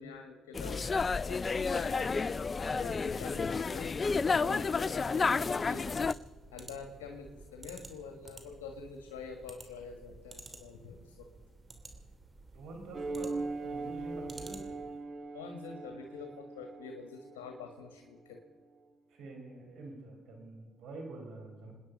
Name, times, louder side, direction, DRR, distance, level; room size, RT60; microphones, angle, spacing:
voice 1, 0.0-2.1 2.7-4.0 4.4-5.9 6.5-11.3 15.3-18.4, left 5 dB, 90° left, 4 dB, 1.6 m, -46 dB
sound 1, 0.5-6.1, left 4 dB, 35° left, 0.4 m, -31 dB
sound 2, 5.8-15.0, right 3 dB, 30° right, 2.9 m, -52 dB
voice 2, 12.5-13.3 13.6-14.6 19.1-21.7, right 2 dB, 75° right, 2 dB, 4.6 m, -46 dB
sound 3, 12.9-17.9, right 3 dB, 45° right, 1.4 m, -40 dB
27.5 x 10.0 x 5.3 m, 1.4 s
supercardioid pair, 60°, 0 cm